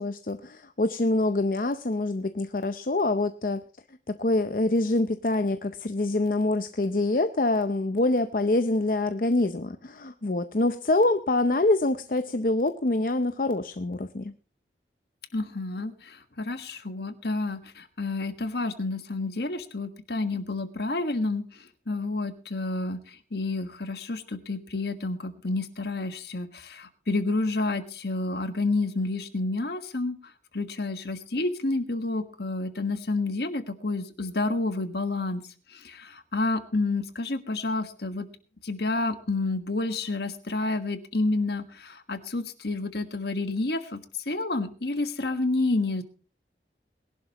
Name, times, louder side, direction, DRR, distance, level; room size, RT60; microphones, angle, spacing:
voice 1, 0.0-3.6 4.1-14.3, left 2 dB, 50° left, 9 dB, 0.6 m, -25 dB
voice 2, 15.3-30.2 30.5-35.4 35.7-38.3 38.6-44.0 44.2-46.0, left 2 dB, 65° left, 10 dB, 1.5 m, -29 dB
21.0 x 11.5 x 3.0 m, 0.37 s
head